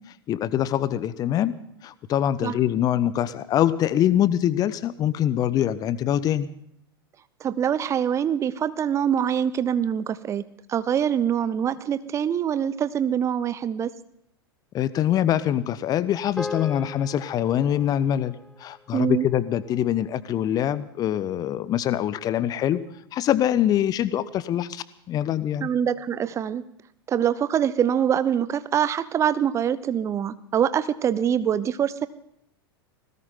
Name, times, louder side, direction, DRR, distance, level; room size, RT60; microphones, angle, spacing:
voice 1, 0.3-1.6 1.8-6.5 14.7-22.8 23.1-25.7, left 11 dB, 30° left, 16 dB, 1.0 m, -24 dB
voice 2, 7.4-10.4 10.7-13.9 18.9-19.2 25.6-26.6 27.1-32.1, right 9 dB, 25° right, 15 dB, 0.9 m, -24 dB
sound 1, 16.4-20.9, left 3 dB, 5° left, 0.7 m, -40 dB
20.5 x 18.0 x 3.8 m, 0.75 s
figure-of-eight pair, 90°, 13 cm